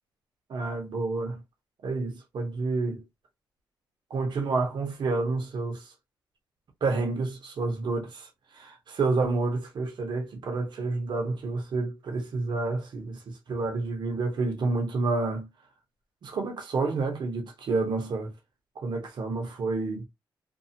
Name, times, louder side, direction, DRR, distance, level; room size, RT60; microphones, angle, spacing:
voice 1, 0.5-1.4 1.8-3.0 4.1-5.9 6.8-8.3 8.5-15.5 16.2-18.3 18.8-20.1, right 3 dB, 65° right, 1.1 m, -29 dB
2.7 x 2.3 x 2.8 m
cardioid pair, 85°, 8 cm